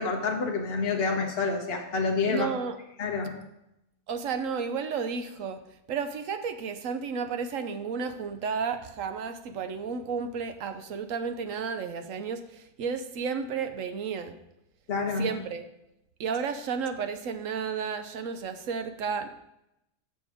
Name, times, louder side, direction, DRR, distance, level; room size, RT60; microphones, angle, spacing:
voice 1, 0.0-2.5 3.0-3.4 14.9-15.3, left 4 dB, 45° left, 2 dB, 1.3 m, -28 dB
voice 2, 2.3-2.8 4.1-5.6 5.9-14.4 15.2-15.6 16.2-19.3, right 6 dB, 65° right, 8 dB, 1.0 m, -32 dB
7.2 x 6.7 x 4.9 m, 0.87 s
omnidirectional pair, 1.6 m